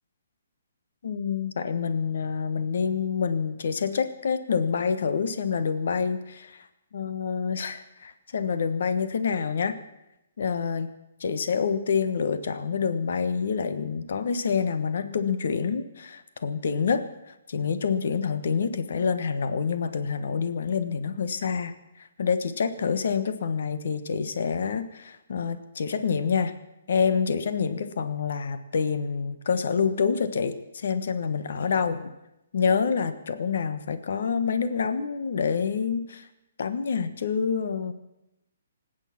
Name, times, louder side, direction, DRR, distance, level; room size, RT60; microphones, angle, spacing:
voice 1, 1.0-6.7 6.9-9.8 10.4-10.9 11.2-26.5 26.9-32.1 32.5-36.3 36.6-37.9, left 6 dB, 55° left, 11 dB, 1.3 m, -27 dB
26.5 x 9.1 x 6.0 m, 0.90 s
hypercardioid pair, 175°, 0 cm